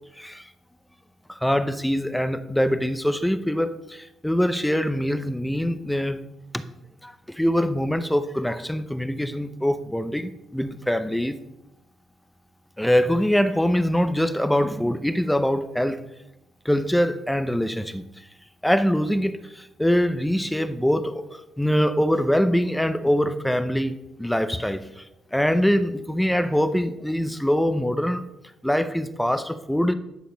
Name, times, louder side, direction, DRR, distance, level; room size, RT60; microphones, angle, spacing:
voice 1, 0.2-0.5 1.3-6.2 6.5-6.6 7.0-11.4 12.8-16.0 16.6-18.0 18.6-25.0 25.3-28.3 28.6-29.9, equal, 5° left, 11 dB, 0.6 m, -23 dB
10.5 x 6.5 x 5.2 m, 0.92 s
cardioid pair, 90°, 0 cm